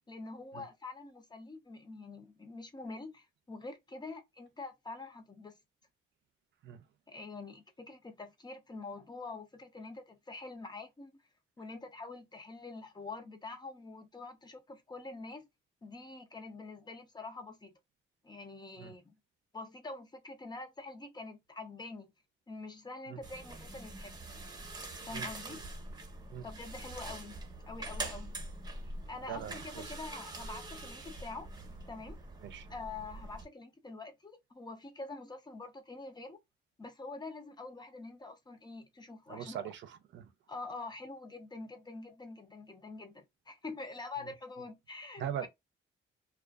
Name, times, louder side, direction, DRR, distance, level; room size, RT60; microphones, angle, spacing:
voice 1, 0.1-5.5 7.1-11.2 11.6-15.5 15.8-17.8 18.2-19.1 19.5-22.1 22.5-24.2 25.1-25.6 26.4-27.4 27.7-28.3 29.1-31.5 31.9-32.2 32.7-36.4 36.8-39.6 40.5-45.5, left 3 dB, 20° left, 0.6 m, -45 dB
sound 1, 23.2-33.4, right 2 dB, 20° right, 0.8 m, -44 dB
voice 2, 25.1-25.6 26.3-26.5 29.3-29.9 32.4-32.7 39.3-40.3 44.2-44.3 45.2-45.5, right 9 dB, 70° right, 0.5 m, -41 dB
2.4 x 2.3 x 2.3 m
cardioid pair, 90°, 20 cm